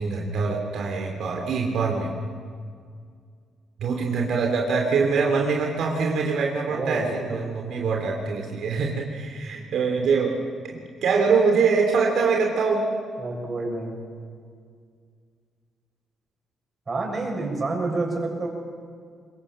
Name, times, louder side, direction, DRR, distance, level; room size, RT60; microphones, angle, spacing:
voice 1, 0.0-2.1 3.8-10.4 10.6-12.9, right 4 dB, 70° right, 0 dB, 3.2 m, -24 dB
voice 2, 6.7-7.1 13.2-14.0 16.9-18.5, right 3 dB, 30° right, 1 dB, 7.0 m, -28 dB
24.5 x 21.0 x 7.7 m, 2.1 s
cardioid pair, 90°, 0 cm